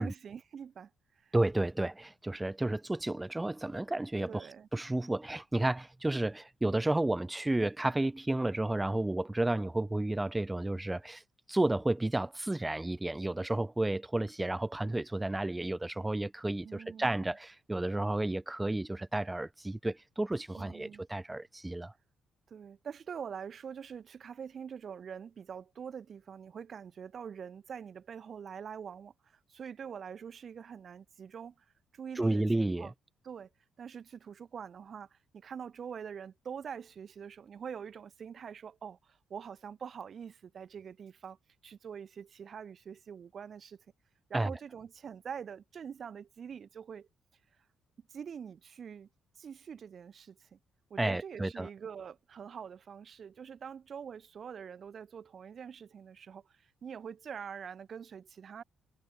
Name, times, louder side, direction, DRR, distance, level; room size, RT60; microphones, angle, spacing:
voice 1, 0.0-1.3 4.3-4.7 16.6-17.3 20.5-21.0 22.5-31.6 31.9-32.9 33.2-33.5 33.8-41.4 41.6-43.8 44.3-47.1 48.1-49.1 49.4-50.6 50.9-58.6, right 7 dB, 50° right, 5.0 m, -45 dB
voice 2, 1.3-4.5 4.7-11.2 11.5-21.9 32.2-32.9 44.3-44.5 51.0-51.7, right 2 dB, 10° right, 4.3 m, -32 dB
cardioid pair, 90°, 0 cm